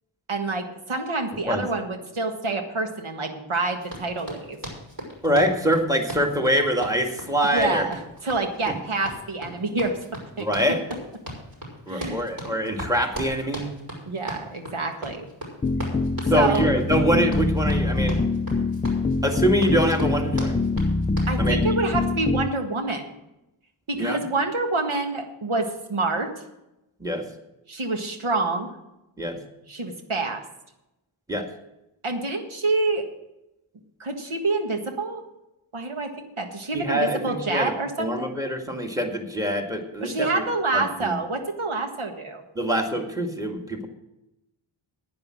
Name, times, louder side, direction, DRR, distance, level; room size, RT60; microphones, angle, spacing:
voice 1, 0.3-4.6 7.5-10.0 10.4-10.5 11.9-12.2 14.1-15.3 16.3-16.7 21.3-23.0 23.9-26.3 27.7-28.7 29.7-30.4 32.0-33.0 34.0-35.2 35.7-38.4 40.0-42.4, right 3 dB, 75° right, 4 dB, 1.7 m, -27 dB
Run, 3.8-21.4, equal, 45° right, 6.0 m, -38 dB
voice 2, 5.2-7.9 8.7-8.8 10.4-10.8 11.9-13.7 16.3-18.2 19.2-20.6 21.4-21.6 23.9-24.2 27.0-27.2 29.2-29.4 31.3-31.5 36.7-37.7 38.0-40.4 40.7-41.2 42.6-43.9, equal, 5° right, 3 dB, 1.9 m, -24 dB
sound 1, 15.6-22.5, left 3 dB, 15° left, 0.3 m, -24 dB
10.5 x 9.7 x 6.4 m, 0.90 s
wide cardioid pair, 80°, 50 cm